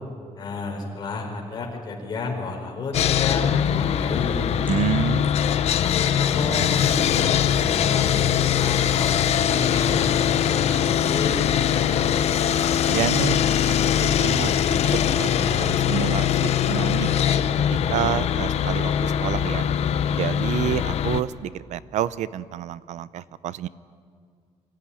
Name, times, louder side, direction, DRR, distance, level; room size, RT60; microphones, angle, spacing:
voice 1, 0.4-4.6 5.7-7.4 7.7-10.1 10.4-12.0, left 3 dB, 35° left, 0 dB, 4.5 m, -32 dB
Sawing, 2.9-21.2, left 9 dB, 65° left, 0.9 m, -22 dB
sound 1, 4.7-5.6 6.4-6.5 7.1-7.4 8.2-9.3 9.8-9.9 10.7-11.0, left 1 dB, 15° right, 6.2 m, -44 dB
voice 2, 4.7-5.3 12.9-13.7 14.0-14.8 15.2-17.1 17.7-19.7 20.1-23.7, right 11 dB, 85° right, 17 dB, 0.7 m, -29 dB
24.0 x 15.0 x 9.8 m, 2.2 s
cardioid pair, 155°, 12 cm